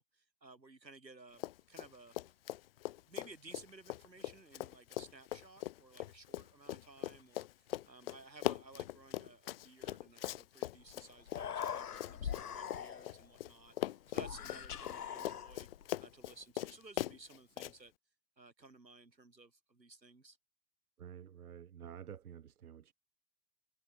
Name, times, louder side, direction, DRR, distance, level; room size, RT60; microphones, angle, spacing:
voice 1, 0.0-2.3 3.1-15.7 16.0-17.9 18.4-20.4, right 3 dB, 80° right, 7.6 m, -57 dB
Run, 1.3-1.9 2.1-13.5 13.8-17.7, left 14 dB, 35° left, 0.6 m, -41 dB
Human voice, 10.8-10.9 11.2-13.3 14.2-15.9, left 8 dB, 65° left, 1.6 m, -42 dB
voice 2, 21.0-22.9, right 9 dB, 60° right, 5.1 m, -50 dB
figure-of-eight pair, 105°, 50 cm